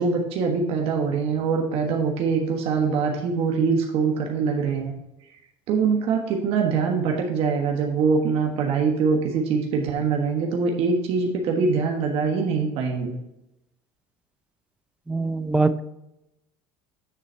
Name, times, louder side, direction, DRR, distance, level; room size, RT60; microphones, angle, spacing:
voice 1, 0.0-4.9 5.7-13.1, right 5 dB, 60° right, 2 dB, 1.3 m, -23 dB
voice 2, 15.1-15.8, right 3 dB, 10° right, 12 dB, 0.4 m, -23 dB
9.5 x 4.0 x 4.3 m, 0.86 s
supercardioid pair, 110°, 11 cm